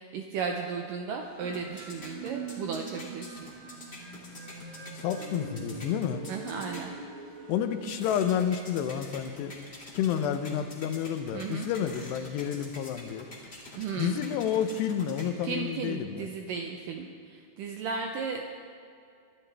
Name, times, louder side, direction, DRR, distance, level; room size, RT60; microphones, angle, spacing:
voice 1, 0.0-3.4 6.3-7.0 11.3-11.7 13.8-14.2 15.4-18.4, right 5 dB, 80° right, 3 dB, 2.0 m, -35 dB
sound 1, 1.2-15.7, left 1 dB, 25° left, 1.6 m, -48 dB
sound 2, 1.4-9.1, right 4 dB, 65° right, 3.0 m, -44 dB
voice 2, 5.0-6.2 7.5-9.6 9.9-13.3 14.0-16.3, left 9 dB, 85° left, 9 dB, 2.9 m, -30 dB
24.0 x 13.0 x 3.4 m, 2.4 s
omnidirectional pair, 4.7 m